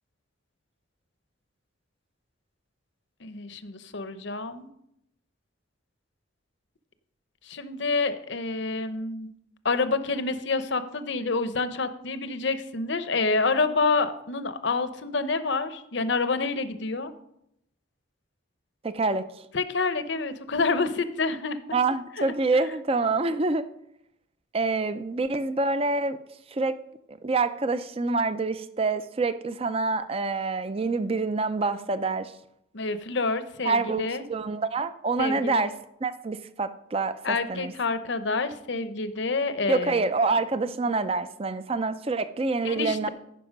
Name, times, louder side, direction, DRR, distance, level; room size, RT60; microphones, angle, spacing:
voice 1, 3.2-4.7 7.5-9.3 9.6-17.1 19.5-21.6 22.2-22.3 32.7-34.2 35.2-35.7 37.2-40.0 42.6-43.1, left 3 dB, 60° left, 11 dB, 0.7 m, -28 dB
voice 2, 18.8-19.3 21.7-23.7 24.5-26.2 26.5-26.8 27.1-32.3 33.6-35.7 36.0-37.7 39.7-43.1, right 3 dB, 30° right, 12 dB, 0.5 m, -26 dB
14.5 x 5.8 x 5.2 m, 0.79 s
head